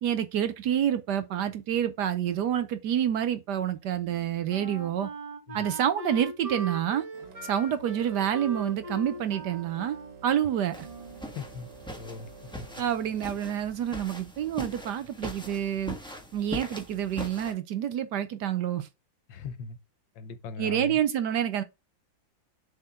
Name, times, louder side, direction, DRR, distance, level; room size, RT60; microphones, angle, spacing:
voice 1, 0.0-5.1 5.5-7.1 7.4-10.9 12.8-16.0 16.3-18.9 20.6-21.6, right 10 dB, 70° right, 1.2 m, -28 dB
Wind instrument woodwind instrument, 4.5-11.3, right 2 dB, 25° right, 0.8 m, -40 dB
sound 1, 7.1-13.4, right 6 dB, 85° right, 2.2 m, -49 dB
sound 2, 10.7-17.5, left 1 dB, 5° left, 1.2 m, -42 dB
voice 2, 11.3-11.7 12.0-12.3 12.6-12.7 19.3-19.8 20.1-21.0, left 5 dB, 75° left, 1.7 m, -39 dB
7.1 x 4.4 x 3.7 m
omnidirectional pair, 2.1 m